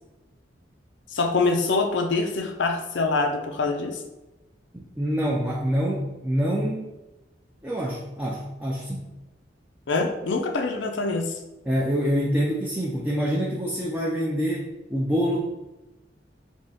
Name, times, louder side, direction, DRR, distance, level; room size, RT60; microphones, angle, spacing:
voice 1, 1.1-4.0 9.9-11.3, left 3 dB, 85° left, 4 dB, 0.6 m, -24 dB
voice 2, 4.7-6.9 7.6-9.1 11.7-15.4, equal, 10° right, -3 dB, 0.4 m, -26 dB
3.6 x 2.9 x 4.1 m, 1.0 s
head